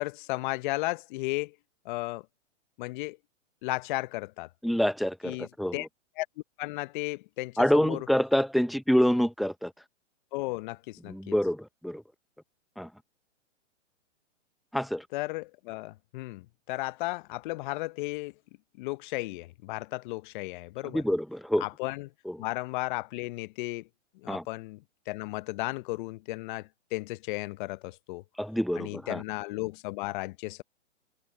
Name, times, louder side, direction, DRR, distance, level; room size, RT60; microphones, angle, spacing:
voice 1, 0.0-1.5 1.8-2.3 2.8-3.2 3.6-4.5 5.2-5.9 6.2-6.3 6.6-8.1 10.3-11.3 15.1-18.3 18.8-21.0 21.6-22.1 22.4-23.9 24.1-28.2 28.7-30.6, left 21 dB, 40° left, 1.1 m, -34 dB
voice 2, 4.6-5.9 7.6-9.7 11.1-12.0 12.8-12.9 14.7-15.0 20.9-21.6 22.3-22.4 24.3-24.4 28.4-29.2, equal, ahead, 0.8 m, -26 dB
hypercardioid pair, 130°, 36 cm